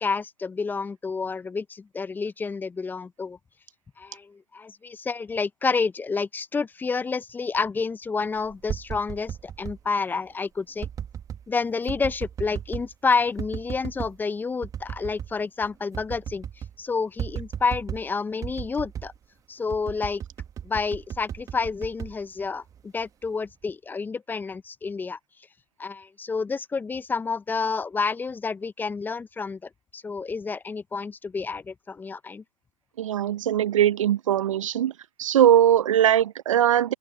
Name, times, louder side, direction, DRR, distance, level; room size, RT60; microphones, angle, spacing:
voice 1, 0.0-3.4 4.0-10.9 11.5-16.5 16.8-19.1 19.5-20.2 20.6-25.2 25.8-29.6 29.9-32.4, left 4 dB, 10° left, 1.1 m, -29 dB
sound 1, 8.4-9.8 10.8-11.4 11.9-12.9 13.4-14.2 14.6-15.3 15.6-15.7 15.9-16.8 17.2-18.1 18.4-19.2 19.7-22.8 23.2-23.6, right 9 dB, 20° right, 1.3 m, -35 dB
voice 2, 33.0-34.9 35.2-36.9, right 10 dB, 60° right, 0.9 m, -20 dB
open air
figure-of-eight pair, 110°, 19 cm